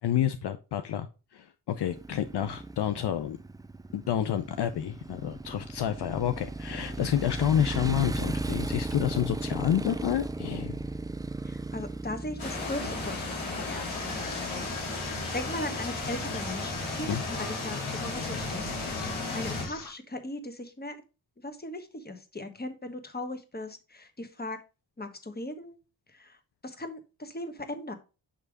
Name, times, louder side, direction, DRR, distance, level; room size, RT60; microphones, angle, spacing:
voice 1, 0.0-1.1 1.3-3.4 3.9-10.8 17.1-17.2, left 10 dB, 60° left, 0.6 m, -29 dB
Motorcycle, 1.8-17.5, right 2 dB, 10° right, 0.3 m, -37 dB
voice 2, 11.4-21.0 21.4-24.6 25.0-25.8 26.1-26.4 26.6-27.9, left 1 dB, 20° left, 1.2 m, -38 dB
sound 1, 12.4-19.6, left 3 dB, 75° left, 3.2 m, -35 dB
sound 2, 13.9-19.9, left 5 dB, 45° left, 1.1 m, -43 dB
6.7 x 3.3 x 4.7 m
cardioid pair, 50°, 47 cm